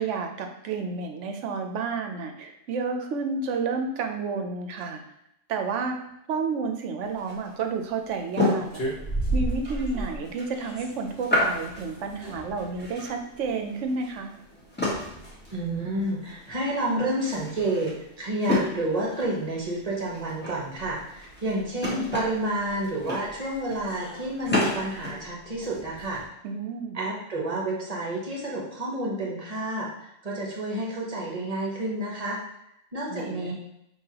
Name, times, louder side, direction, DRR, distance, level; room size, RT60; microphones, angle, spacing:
voice 1, 0.0-5.0 5.5-6.0 6.3-8.8 9.3-14.3 26.4-27.0 33.1-33.5, right 4 dB, 70° right, 5 dB, 1.0 m, -30 dB
sound 1, 7.0-25.2, left 2 dB, 10° left, 1.2 m, -32 dB
sound 2, 8.6-26.3, right 1 dB, 50° left, 1.3 m, -38 dB
voice 2, 15.5-26.2 26.9-29.9 30.2-32.4 32.9-33.5, right 1 dB, 30° right, -3 dB, 1.2 m, -29 dB
5.6 x 3.0 x 2.8 m, 0.79 s
omnidirectional pair, 1.3 m